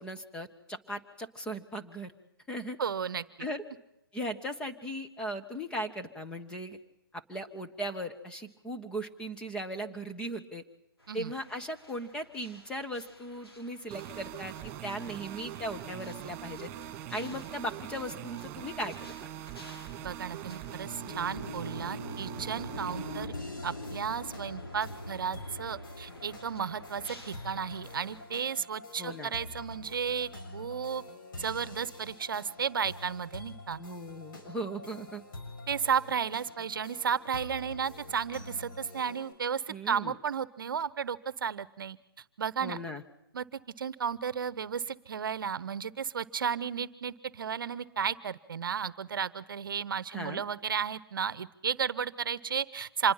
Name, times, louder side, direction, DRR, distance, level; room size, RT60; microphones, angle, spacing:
voice 1, 0.0-2.1 2.5-2.8 3.4-3.6 4.1-6.8 7.1-10.6 11.1-16.7 17.1-19.1 29.0-29.3 33.8-35.2 39.7-40.2 42.6-43.0 50.1-50.4, equal, 5° left, 6 dB, 1.3 m, -38 dB
voice 2, 2.8-3.2 11.1-11.3 20.0-23.3 23.6-31.0 31.4-33.8 35.7-42.0 42.4-42.8 43.3-53.1, right 7 dB, 60° right, 17 dB, 1.0 m, -33 dB
sound 1, 11.0-28.3, left 1 dB, 90° left, 6.8 m, -46 dB
sound 2, 13.9-23.3, right 12 dB, 20° right, 2.9 m, -42 dB
sound 3, 23.3-39.3, left 2 dB, 55° left, 6.8 m, -47 dB
26.5 x 20.5 x 5.8 m, 0.84 s
hypercardioid pair, 145°, 13 cm